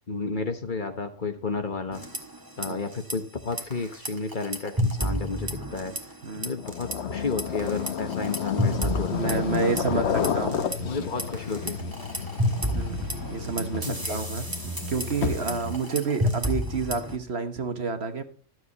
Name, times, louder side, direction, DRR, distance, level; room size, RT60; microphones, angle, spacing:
voice 1, 0.1-2.0 2.6-5.9 6.3-10.6 10.8-11.8 13.8-14.2, left 4 dB, 40° left, 7 dB, 1.2 m, -32 dB
sound 1, 1.9-2.7 2.9-3.1 3.5-6.2 6.4-7.0 7.4-10.8 11.2-17.2, equal, 15° right, 1.5 m, -30 dB
voice 2, 6.2-6.6 9.1-10.6 12.7-14.4 14.9-18.2, right 4 dB, 55° right, 8 dB, 1.4 m, -29 dB
sound 2, 6.6-15.7, left 7 dB, 65° left, 1.1 m, -32 dB
sound 3, 9.4-10.1 10.6-12.0 12.6-13.9 14.5-15.8, right 2 dB, 90° right, 2.0 m, -40 dB
12.5 x 7.5 x 4.0 m, 0.41 s
omnidirectional pair, 1.3 m